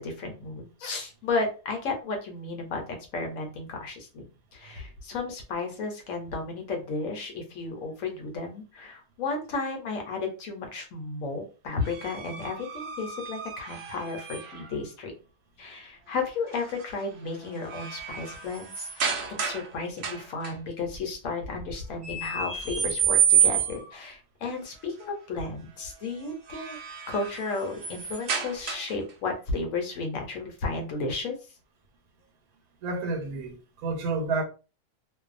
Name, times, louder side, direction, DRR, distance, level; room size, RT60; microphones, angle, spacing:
voice 1, 0.0-2.8 3.1-4.3 4.5-15.1 15.6-19.1 19.4-26.8 27.1-31.3, left 3 dB, 70° left, 1.1 m, -33 dB
sound 1, 11.8-14.7 16.5-16.8 17.3-19.7 20.0-20.5 22.0-23.9 26.2-29.1, right 8 dB, 60° right, 0.8 m, -29 dB
voice 2, 32.8-34.4, right 3 dB, 90° right, 1.2 m, -30 dB
2.6 x 2.2 x 2.4 m
omnidirectional pair, 1.5 m